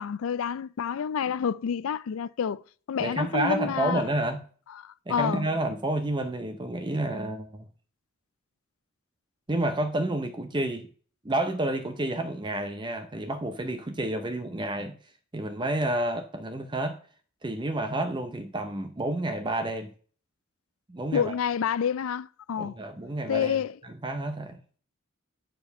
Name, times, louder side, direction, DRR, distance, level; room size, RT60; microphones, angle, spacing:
voice 1, 0.0-2.6 2.9-4.0 4.8-5.5 21.1-22.8 23.3-23.8, left 7 dB, 70° left, 0.4 m, -28 dB
voice 2, 3.0-4.4 5.1-7.7 9.5-10.9 11.2-15.0 15.3-17.0 17.4-19.9 20.9-21.3 22.6-23.6 24.0-24.6, right 1 dB, 20° right, 0.6 m, -30 dB
9.1 x 4.6 x 5.3 m
head